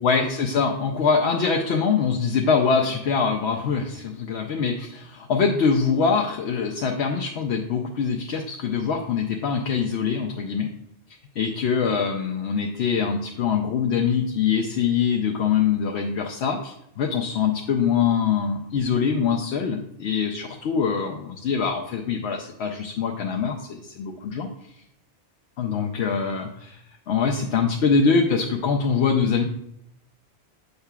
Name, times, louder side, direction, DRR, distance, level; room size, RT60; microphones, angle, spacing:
voice 1, 0.0-10.7 11.4-24.5 25.6-26.8 27.1-29.4, left 6 dB, 85° left, 1 dB, 0.9 m, -23 dB
7.9 x 5.6 x 2.3 m, 0.77 s
omnidirectional pair, 1.1 m